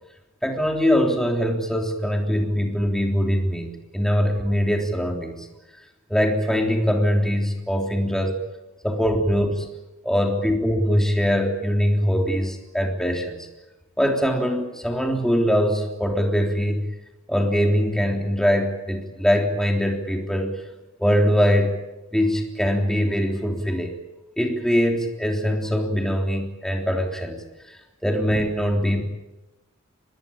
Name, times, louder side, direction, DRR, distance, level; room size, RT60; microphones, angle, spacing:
voice 1, 0.4-5.5 6.1-8.4 8.8-9.7 10.0-13.4 14.0-16.9 17.3-20.6 21.0-21.8 22.1-23.9 24.4-27.4 27.7-27.8 28.0-29.0, equal, ahead, 2 dB, 3.5 m, -22 dB
25.5 x 20.0 x 8.9 m, 1.0 s
head